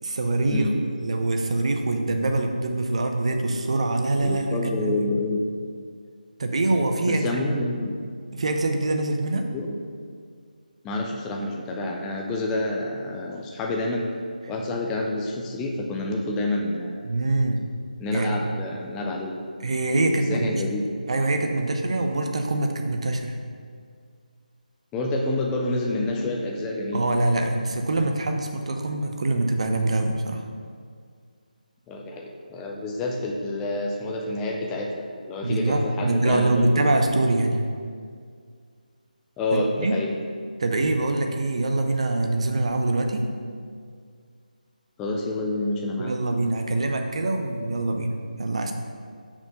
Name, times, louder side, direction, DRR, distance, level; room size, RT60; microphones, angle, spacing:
voice 1, 0.0-5.1 6.4-7.4 8.3-9.5 17.0-17.6 18.1-18.5 19.6-20.6 21.1-23.4 26.9-30.4 35.4-37.6 39.5-40.0 40.6-43.3 46.0-48.1 48.4-48.7, right 2 dB, 45° right, 5 dB, 0.6 m, -24 dB
voice 2, 4.2-5.4 7.1-8.0 9.5-9.8 10.8-14.1 14.5-17.0 18.0-19.4 20.3-21.0 24.9-27.1 31.9-36.9 39.4-40.1 45.0-46.1, left 2 dB, 5° left, 0 dB, 0.3 m, -28 dB
5.8 x 4.3 x 5.6 m, 2.1 s
figure-of-eight pair, 155°, 5 cm